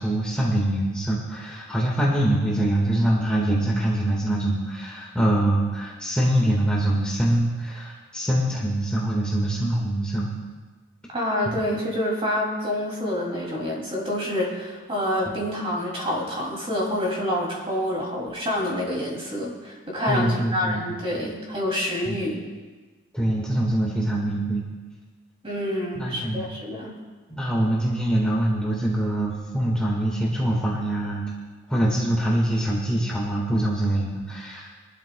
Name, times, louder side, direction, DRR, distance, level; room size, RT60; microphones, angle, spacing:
voice 1, 0.0-10.3 15.3-15.4 20.1-21.3 22.1-22.3 23.1-24.6 25.9-26.5 27.3-31.2 31.7-34.8, right 1 dB, 5° left, -5 dB, 1.5 m, -24 dB
voice 2, 11.1-22.4 25.4-26.9, left 1 dB, 25° right, -2 dB, 2.6 m, -27 dB
23.0 x 12.0 x 2.2 m, 1.3 s
head